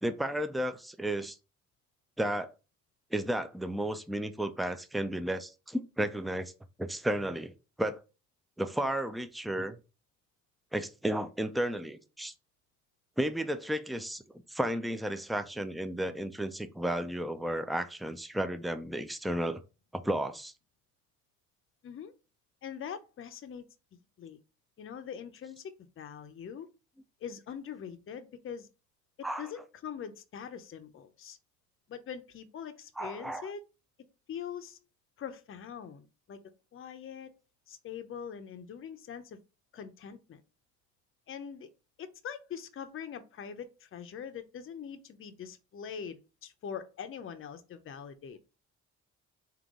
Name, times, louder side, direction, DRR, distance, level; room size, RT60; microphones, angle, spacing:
voice 1, 0.0-1.4 2.2-2.5 3.1-6.5 6.8-7.5 7.8-8.0 8.6-9.8 10.7-12.3 13.2-14.2 14.5-19.6 19.9-20.5 29.2-29.5 33.0-33.5, right 1 dB, ahead, 0.4 m, -33 dB
voice 2, 21.8-22.1 22.6-23.6 24.2-24.4 24.8-26.7 27.2-28.7 29.2-31.4 31.9-33.6 34.3-34.8 35.2-36.4 36.7-37.3 37.7-39.4 39.7-40.4 41.3-41.7 42.0-48.5, left 7 dB, 45° left, 0.6 m, -43 dB
3.8 x 2.9 x 3.6 m
cardioid pair, 90°, 30 cm